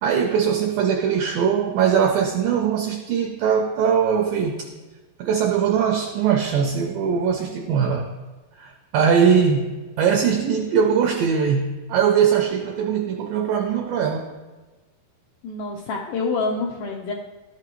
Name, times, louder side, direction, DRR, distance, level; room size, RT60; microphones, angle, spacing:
voice 1, 0.0-4.7 5.2-8.1 8.6-9.7 10.0-14.3, right 7 dB, 80° right, 2 dB, 2.0 m, -21 dB
voice 2, 15.4-17.1, left 3 dB, 90° left, -2 dB, 1.9 m, -27 dB
13.0 x 5.9 x 3.1 m, 1.3 s
omnidirectional pair, 4.5 m